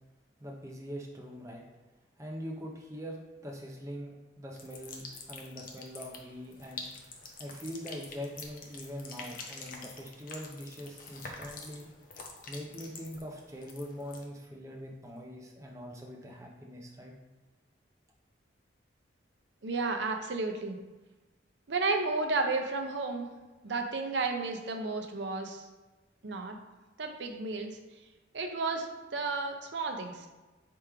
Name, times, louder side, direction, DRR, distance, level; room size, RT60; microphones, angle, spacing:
voice 1, 0.4-1.6 2.2-6.9 7.4-11.9 12.5-17.1, equal, 15° right, -1 dB, 0.5 m, -43 dB
sound 1, 4.5-14.2, left 4 dB, 45° left, 0.6 m, -47 dB
voice 2, 19.6-20.8 21.7-23.3 23.6-25.6 26.2-26.6 27.0-27.8 28.3-28.9 29.1-30.3, right 3 dB, 70° right, 4 dB, 0.6 m, -32 dB
3.4 x 3.0 x 4.8 m, 1.2 s
head